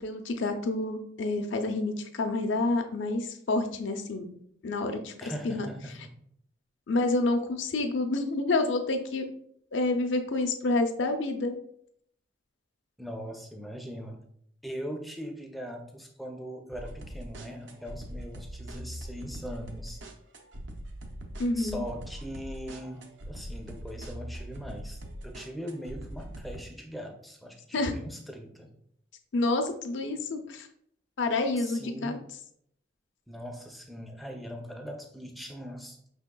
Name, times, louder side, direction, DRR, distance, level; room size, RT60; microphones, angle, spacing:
voice 1, 0.0-4.2 4.6-5.1 5.4-5.7 6.9-9.3 9.7-11.5 21.4-21.8 27.7-27.9 29.3-30.7 31.2-32.2, left 2 dB, 75° left, 5 dB, 0.5 m, -28 dB
voice 2, 5.2-6.2 13.0-14.2 14.6-20.0 21.5-28.7 31.5-32.2 33.3-36.0, equal, ahead, 3 dB, 0.4 m, -40 dB
sound 1, 16.7-26.6, right 1 dB, 70° right, 0.6 m, -42 dB
5.3 x 3.5 x 2.2 m, 0.69 s
head